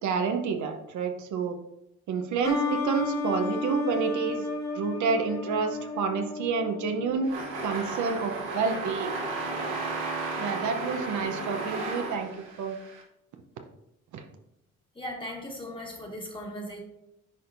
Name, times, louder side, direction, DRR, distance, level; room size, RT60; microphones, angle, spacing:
voice 1, 0.0-1.6 2.1-4.5 4.7-7.3 7.6-9.1 10.4-12.3 12.6-12.8 14.1-14.2, right 5 dB, 75° right, 5 dB, 0.8 m, -29 dB
sound 1, 2.4-7.9, left 3 dB, 65° left, 1.9 m, -33 dB
sound 2, 7.2-13.0, right 3 dB, 90° right, 1.5 m, -34 dB
voice 2, 14.9-16.8, equal, 15° left, 0 dB, 1.7 m, -38 dB
9.6 x 4.3 x 2.6 m, 0.83 s
cardioid pair, 90°, 30 cm